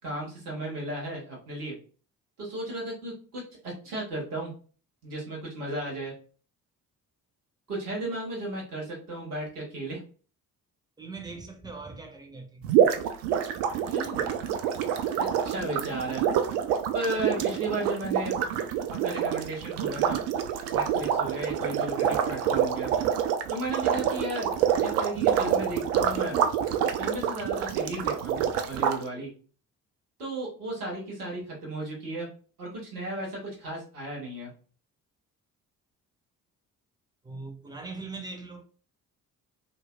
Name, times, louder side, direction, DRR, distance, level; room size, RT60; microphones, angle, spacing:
voice 1, 0.0-1.7 2.4-4.5 5.0-6.1 7.7-10.0 13.9-14.3 15.2-16.2 16.9-18.3 19.0-20.2 20.7-22.9 23.5-26.4 27.0-29.3 30.2-32.3 32.6-34.5, right 2 dB, 80° right, 0.9 m, -35 dB
voice 2, 11.0-12.7 15.4-15.5 37.2-38.6, right 3 dB, 10° right, 0.6 m, -41 dB
sound 1, 12.6-29.0, right 8 dB, 60° right, 0.5 m, -27 dB
2.9 x 2.5 x 2.3 m
figure-of-eight pair, 45°, 45 cm